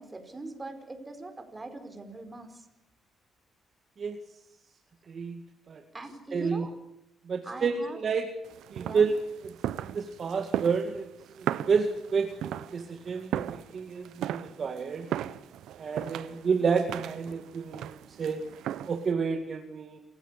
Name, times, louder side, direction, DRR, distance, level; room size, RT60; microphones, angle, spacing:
voice 1, 0.0-2.6 5.9-6.7 7.4-8.0 8.8-9.1, right 2 dB, 20° right, 7 dB, 4.9 m, -41 dB
voice 2, 5.1-5.8 6.3-6.7 7.3-8.3 8.7-9.5 9.8-11.1 11.4-12.3 12.7-15.1 15.8-18.4 18.9-20.0, right 5 dB, 50° right, 5 dB, 2.0 m, -30 dB
sound 1, 8.4-19.1, right 11 dB, 80° right, 0.9 m, -37 dB
28.5 x 16.0 x 8.4 m, 0.82 s
cardioid pair, 90°, 0 cm